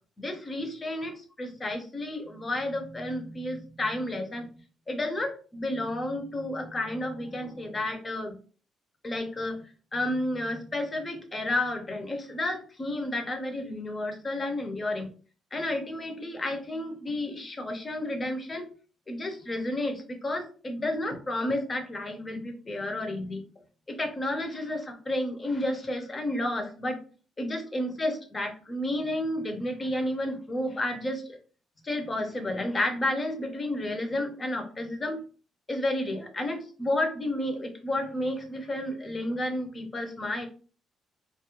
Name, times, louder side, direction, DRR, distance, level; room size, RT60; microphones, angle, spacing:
voice 1, 0.2-4.5 4.9-8.4 9.0-9.6 9.9-15.1 15.5-18.7 19.1-23.4 23.9-27.0 27.4-31.4 31.8-35.2 35.7-40.5, left 1 dB, 30° left, 4 dB, 0.7 m, -31 dB
2.4 x 2.0 x 2.9 m, 0.39 s
cardioid pair, 90°, 0 cm